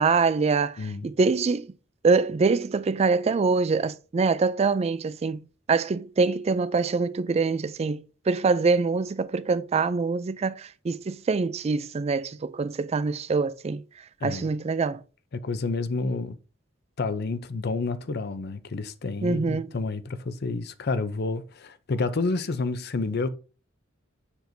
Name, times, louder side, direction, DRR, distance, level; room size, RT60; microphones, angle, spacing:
voice 1, 0.0-1.7 2.0-13.8 14.2-15.0 19.2-19.7, right 4 dB, 30° right, 0.3 m, -24 dB
voice 2, 15.3-16.4 17.0-23.3, left 3 dB, 55° left, 0.6 m, -29 dB
7.1 x 6.0 x 2.7 m
head